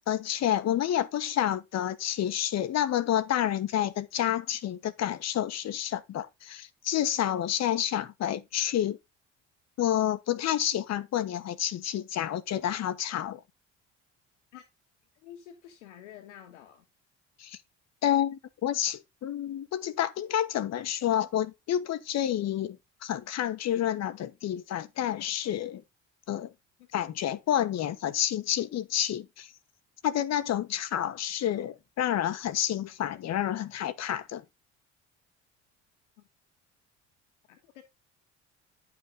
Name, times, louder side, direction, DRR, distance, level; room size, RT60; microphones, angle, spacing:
voice 1, 0.1-9.0 9.8-13.4 17.4-17.6 18.0-22.8 23.0-25.8 26.3-26.5 26.9-29.5 30.0-34.4, left 11 dB, 45° left, 1.1 m, -29 dB
voice 2, 15.2-16.9 26.8-26.9 37.5-37.8, left 10 dB, 75° left, 1.7 m, -49 dB
10.5 x 5.9 x 3.7 m
figure-of-eight pair, 55°, 36 cm